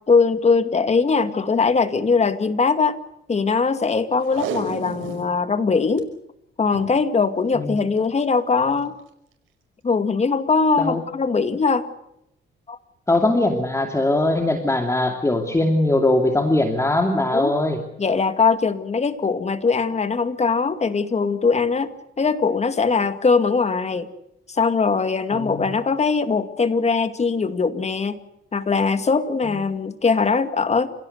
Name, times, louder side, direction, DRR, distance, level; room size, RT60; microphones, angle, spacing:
voice 1, 0.1-3.0 3.3-6.1 6.6-8.9 9.8-11.9 12.7-12.8 17.3-17.6 18.0-21.9 22.2-24.1 24.5-28.2 28.5-30.9, left 4 dB, 35° left, 10 dB, 2.2 m, -21 dB
Packing tape duct tape, 4.2-5.3 5.7-6.0 6.6-7.0 8.0-8.2 8.8-8.9, right 5 dB, 90° right, 5.3 m, -31 dB
voice 2, 13.1-17.8 25.3-25.7, left 2 dB, 15° left, 4 dB, 2.6 m, -20 dB
28.5 x 17.0 x 8.1 m, 0.80 s
cardioid pair, 90°, 20 cm